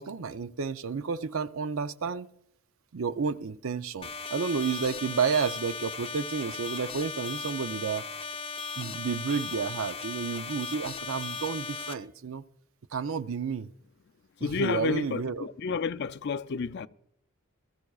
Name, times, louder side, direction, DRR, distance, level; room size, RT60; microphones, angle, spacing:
voice 1, 0.0-2.3 2.9-8.1 8.8-12.4 12.9-13.7 14.4-15.5, right 5 dB, 65° right, 0.5 m, -31 dB
sound 1, 4.0-11.9, left 5 dB, 25° left, 0.7 m, -37 dB
voice 2, 14.4-16.9, left 5 dB, 50° left, 0.4 m, -31 dB
20.0 x 14.0 x 2.4 m
head